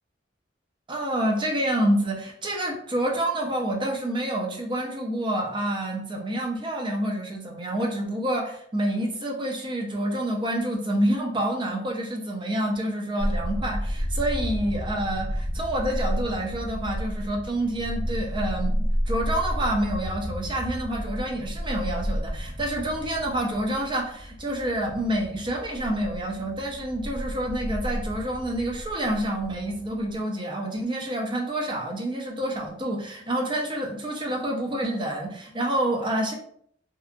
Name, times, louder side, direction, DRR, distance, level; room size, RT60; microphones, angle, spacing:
voice 1, 0.9-36.3, right 1 dB, 25° right, 0 dB, 0.5 m, -28 dB
sound 1, 13.2-30.2, equal, 35° left, 1.0 m, -31 dB
2.7 x 2.2 x 2.5 m, 0.65 s
head